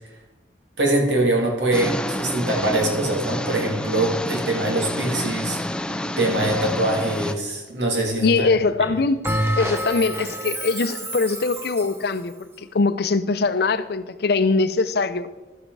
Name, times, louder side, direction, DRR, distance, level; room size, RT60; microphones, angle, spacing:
voice 1, 0.8-5.6 6.2-8.5, right 1 dB, 85° right, 0 dB, 2.5 m, -23 dB
sound 1, 1.7-7.3, left 1 dB, 5° left, 0.4 m, -29 dB
voice 2, 8.2-9.2 9.6-15.3, left 3 dB, 65° left, 13 dB, 0.6 m, -22 dB
Bell, 9.2-12.0, right 1 dB, 15° right, 0.8 m, -27 dB
12.0 x 7.7 x 4.7 m, 1.1 s
head